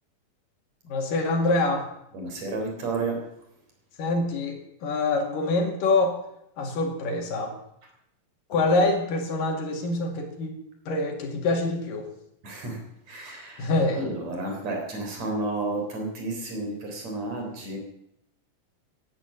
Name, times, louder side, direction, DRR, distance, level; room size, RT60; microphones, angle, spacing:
voice 1, 0.8-1.9 4.0-6.2 6.6-7.6 8.5-10.6 10.9-12.1 13.6-14.0, left 2 dB, 70° left, 3 dB, 4.0 m, -25 dB
voice 2, 2.1-3.2 12.4-12.8 13.1-17.8, right 2 dB, 50° right, 2 dB, 4.8 m, -31 dB
16.5 x 11.0 x 7.4 m, 0.79 s
omnidirectional pair, 4.0 m